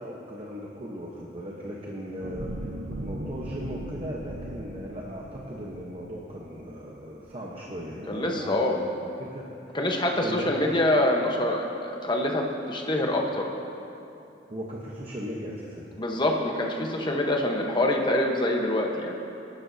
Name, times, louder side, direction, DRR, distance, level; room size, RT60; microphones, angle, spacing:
voice 1, 0.0-9.8 10.2-10.5 14.5-15.8, equal, 35° right, -3 dB, 1.0 m, -37 dB
sound 1, 2.2-6.7 7.2-7.3, right 1 dB, 65° right, 0.8 m, -38 dB
voice 2, 8.1-8.8 9.7-13.5 16.0-19.2, left 1 dB, 25° left, 1 dB, 1.1 m, -25 dB
20.0 x 11.5 x 2.8 m, 2.8 s
head